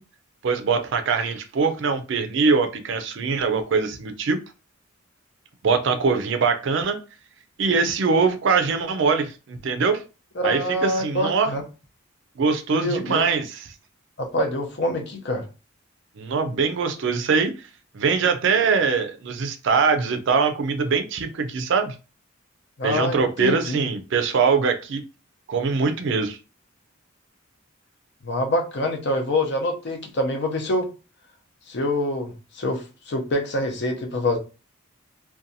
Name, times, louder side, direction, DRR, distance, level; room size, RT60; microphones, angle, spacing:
voice 1, 0.4-4.4 5.6-7.0 7.6-10.0 10.4-11.5 12.4-13.6 16.2-17.6 17.9-21.9 22.8-25.0 25.5-26.4, right 5 dB, 60° right, 0.4 m, -22 dB
voice 2, 10.4-11.6 12.7-13.2 14.2-15.4 22.8-23.8 28.2-30.9 31.7-34.4, left 1 dB, 55° left, 0.6 m, -25 dB
2.6 x 2.2 x 2.6 m
head